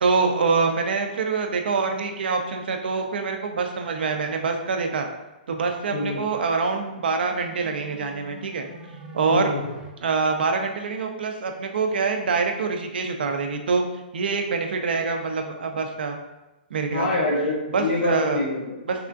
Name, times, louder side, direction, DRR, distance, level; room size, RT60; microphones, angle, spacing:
voice 1, 0.0-5.1 5.5-8.7 9.1-9.5 10.0-13.8 14.1-16.2 16.7-17.1 17.7-18.4 18.9-19.1, right 4 dB, 80° right, 4 dB, 0.4 m, -25 dB
voice 2, 5.9-6.3 9.3-9.7 16.9-18.8, left 2 dB, 85° left, -4 dB, 0.6 m, -26 dB
sound 1, 6.7-9.9, right 2 dB, 15° right, 0.4 m, -44 dB
3.5 x 2.4 x 2.3 m, 0.98 s
hypercardioid pair, 145°, 5 cm